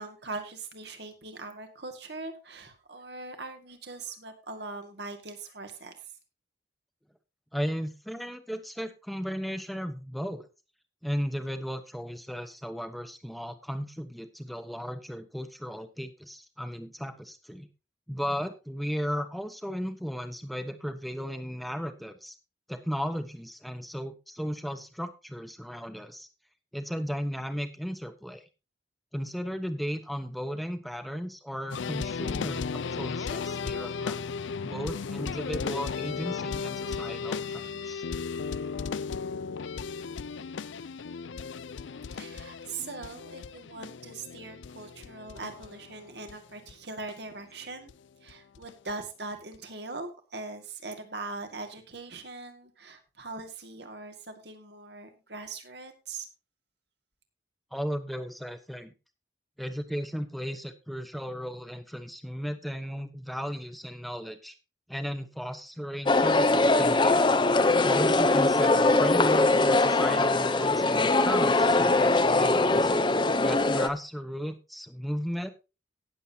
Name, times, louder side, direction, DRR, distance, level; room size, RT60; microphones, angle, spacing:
voice 1, 0.0-5.9 42.1-47.9 48.2-56.3, right 3 dB, 60° right, 6 dB, 2.1 m, -41 dB
voice 2, 7.5-10.5 11.0-17.7 18.1-22.3 22.7-26.3 26.7-28.4 29.1-34.2 34.6-38.0 57.7-58.9 59.6-64.6 64.9-67.2 67.8-72.9 73.4-75.5, equal, ahead, 9 dB, 1.0 m, -35 dB
sound 1, 31.7-46.4 46.7-46.8 47.1-47.2 47.9-48.0 48.3-48.9 49.5-49.6, left 5 dB, 75° left, 0.5 m, -35 dB
sound 2, 66.1-73.9, left 2 dB, 25° left, 0.7 m, -22 dB
18.0 x 7.6 x 2.8 m, 0.29 s
head